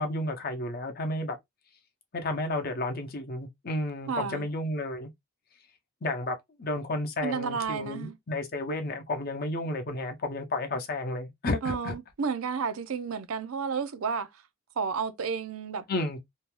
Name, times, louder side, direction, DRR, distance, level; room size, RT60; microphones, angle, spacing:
voice 1, 0.0-1.4 2.1-5.1 6.0-11.9 15.9-16.2, left 2 dB, 45° left, 0.7 m, -32 dB
voice 2, 4.1-4.5 7.2-8.2 11.6-14.4 14.8-15.8, right 5 dB, 80° right, 0.5 m, -31 dB
2.7 x 2.2 x 3.1 m
head